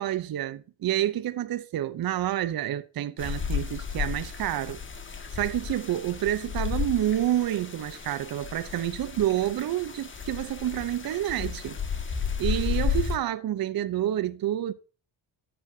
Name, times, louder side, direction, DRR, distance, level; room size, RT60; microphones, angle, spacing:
voice 1, 0.0-4.8 5.3-11.8 12.4-14.7, right 12 dB, 50° right, 0.7 m, -28 dB
sound 1, 3.2-13.2, left 6 dB, 25° left, 1.7 m, -33 dB
10.0 x 8.5 x 2.8 m
cardioid pair, 75°, 45 cm